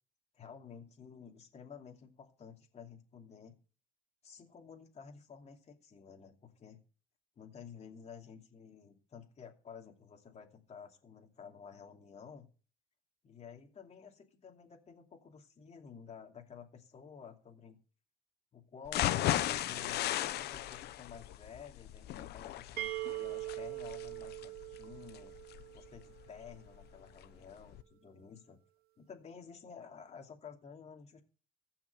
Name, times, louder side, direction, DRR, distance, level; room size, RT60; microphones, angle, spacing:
voice 1, 0.3-3.6 4.2-6.8 7.4-12.5 13.2-17.8 18.5-25.3 25.7-28.6 29.0-31.2, left 6 dB, 40° left, 3 dB, 2.6 m, -52 dB
sound 1, 18.8-26.8 27.2-27.3 27.7-27.8, left 13 dB, 75° left, 0.8 m, -36 dB
sound 2, 22.8-26.5, right 18 dB, 70° right, 0.8 m, -42 dB
15.5 x 5.9 x 6.7 m, 0.37 s
cardioid pair, 110°, 17 cm